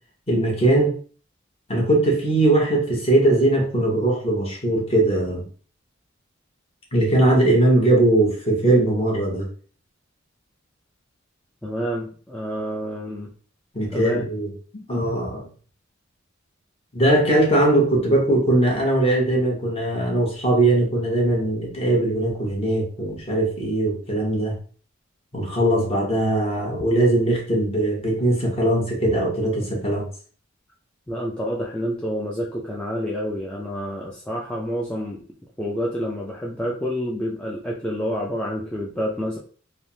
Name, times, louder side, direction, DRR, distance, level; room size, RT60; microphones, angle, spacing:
voice 1, 0.3-1.0 1.7-5.4 6.9-9.4 13.7-14.5 14.9-15.5 16.9-24.5 25.3-30.0, right 1 dB, 30° left, -2 dB, 0.9 m, -20 dB
voice 2, 11.6-13.3 13.9-14.3 31.1-35.2 35.6-39.4, equal, 5° left, -4 dB, 0.3 m, -28 dB
3.2 x 2.0 x 2.6 m, 0.42 s
head